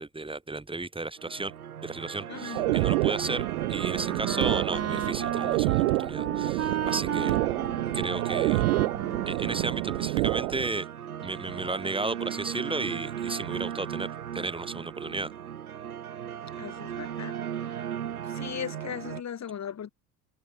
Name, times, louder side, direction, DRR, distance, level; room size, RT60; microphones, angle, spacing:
voice 1, 0.0-1.5 1.8-7.4 7.9-8.7 9.3-10.9 11.2-14.1 14.3-15.3, right 2 dB, 10° right, 6.3 m, -34 dB
sound 1, 1.2-19.2, right 9 dB, 85° right, 1.1 m, -36 dB
voice 2, 2.3-2.7 16.6-17.4 17.7-17.8 18.2-19.9, left 8 dB, 40° left, 6.7 m, -38 dB
sound 2, 2.5-10.7, right 23 dB, 65° right, 0.7 m, -28 dB
Wind instrument woodwind instrument, 3.7-10.4, right 8 dB, 35° right, 2.9 m, -34 dB
figure-of-eight pair, 60°, 43 cm